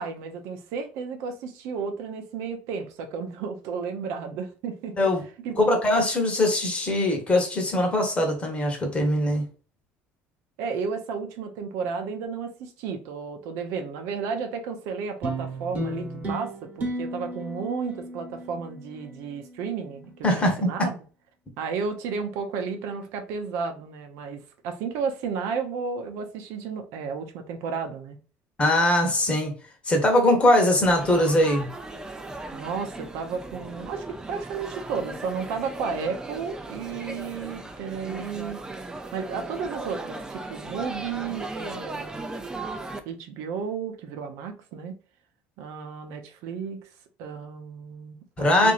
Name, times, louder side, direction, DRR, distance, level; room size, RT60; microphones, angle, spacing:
voice 1, 0.0-5.0 5.4-5.6 10.6-21.0 21.6-28.2 32.5-38.6 39.1-42.3 43.0-44.9 45.6-46.8 47.2-48.7, right 5 dB, 75° right, 0.6 m, -33 dB
voice 2, 5.6-9.4 20.2-20.7 28.6-29.5 29.8-31.7 48.4-48.7, left 1 dB, 25° left, 1.0 m, -21 dB
sound 1, 15.2-19.9, right 1 dB, 35° right, 1.1 m, -34 dB
Laughter / Chatter / Crowd, 30.8-43.0, right 2 dB, 15° right, 0.4 m, -37 dB
2.8 x 2.5 x 2.4 m
cardioid pair, 110°, 5 cm